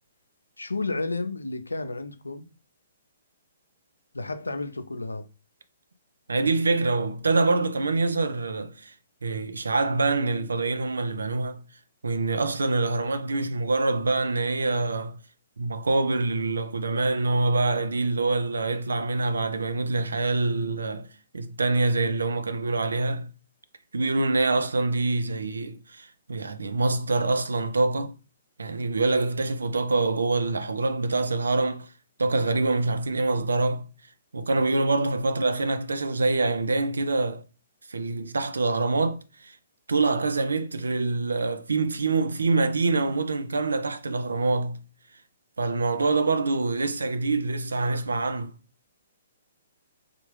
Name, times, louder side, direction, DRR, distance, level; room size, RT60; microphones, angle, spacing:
voice 1, 0.6-2.5 4.1-5.3, left 3 dB, 85° left, 0.5 m, -31 dB
voice 2, 6.3-8.9 9.2-11.6 12.0-15.2 15.6-21.1 21.3-23.3 23.9-28.2 28.6-31.9 32.2-33.8 34.3-37.4 37.9-39.5 39.9-44.8 45.6-48.5, right 3 dB, 75° right, 0.5 m, -25 dB
3.4 x 2.4 x 3.2 m
figure-of-eight pair, 125°, 0 cm